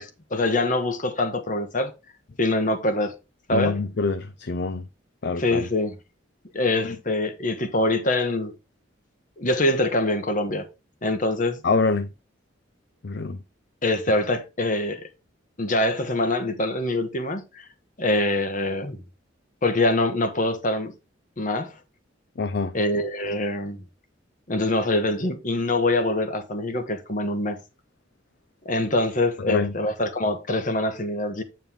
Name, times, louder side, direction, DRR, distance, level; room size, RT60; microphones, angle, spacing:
voice 1, 0.0-1.9 2.4-3.1 3.5-3.8 5.4-6.0 6.5-8.5 9.4-10.6 11.0-11.6 13.8-15.1 15.6-17.6 18.0-19.0 19.6-20.9 21.4-21.7 22.7-23.8 24.5-27.6 28.6-31.4, left 2 dB, 40° left, 1.4 m, -24 dB
voice 2, 3.5-4.8 5.2-5.7 11.6-12.1 13.0-13.4 22.4-22.7 29.5-29.7, left 4 dB, 55° left, 0.5 m, -25 dB
9.0 x 5.3 x 3.7 m
head